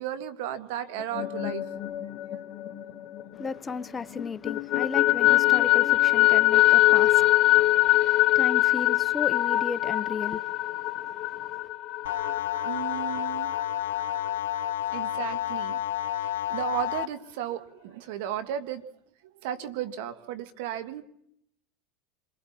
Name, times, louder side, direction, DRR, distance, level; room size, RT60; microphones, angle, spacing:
voice 1, 0.0-1.6 12.6-13.5 14.9-15.8 16.2-18.8 19.2-21.0, right 11 dB, 70° right, 1.8 m, -34 dB
sound 1, 1.0-3.8 4.2-13.6, left 17 dB, 45° left, 1.1 m, -23 dB
voice 2, 3.3-11.7, left 4 dB, 20° left, 0.9 m, -36 dB
sound 2, 12.1-17.1, left 13 dB, 85° left, 0.7 m, -30 dB
28.0 x 22.0 x 4.3 m
supercardioid pair, 110°, 0 cm